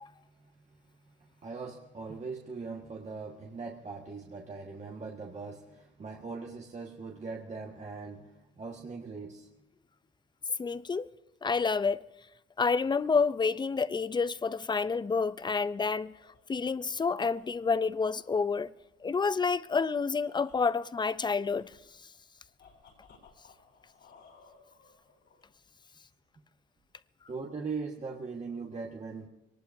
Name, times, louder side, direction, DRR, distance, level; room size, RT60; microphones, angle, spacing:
voice 1, 1.2-9.5 11.1-11.3 27.3-29.3, right 4 dB, 35° right, 1.7 m, -40 dB
voice 2, 10.6-11.1 11.4-12.0 12.6-16.1 16.5-18.7 19.0-21.7, left 5 dB, 20° left, 0.5 m, -29 dB
sound 1, 15.6-25.7, left 5 dB, 70° left, 5.1 m, -62 dB
23.5 x 19.0 x 2.7 m
cardioid pair, 90°, 20 cm